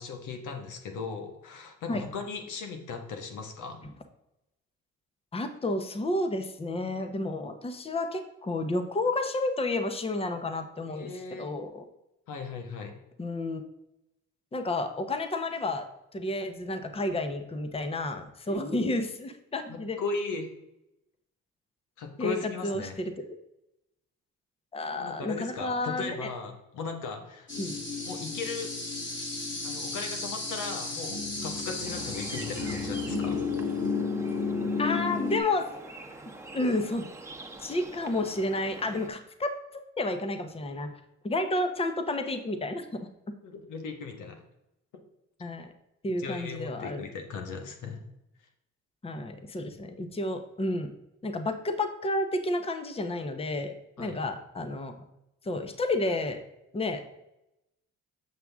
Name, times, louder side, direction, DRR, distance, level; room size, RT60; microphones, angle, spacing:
voice 1, 0.0-3.9 10.9-11.5 12.3-13.0 18.5-18.6 19.7-20.5 22.0-23.0 25.0-27.5 28.0-28.7 29.6-33.4 43.4-44.4 46.2-48.0 54.0-54.2, left 4 dB, 80° left, 4 dB, 1.4 m, -37 dB
voice 2, 5.3-11.1 11.4-11.8 13.2-13.6 14.5-15.9 16.1-20.0 22.2-22.4 22.6-23.4 24.7-26.3 27.6-27.8 34.8-35.7 36.5-37.1 37.6-40.9 41.2-42.9 45.4-45.7 46.0-47.0 49.0-50.9 51.2-54.9 55.4-56.4 56.7-57.0, left 2 dB, 20° left, 7 dB, 0.8 m, -31 dB
sound 1, 27.5-35.4, left 4 dB, 40° left, 2.6 m, -32 dB
sound 2, 31.8-39.1, right 2 dB, 10° right, 1.0 m, -45 dB
7.6 x 5.9 x 3.5 m, 0.89 s
cardioid pair, 90°, 30 cm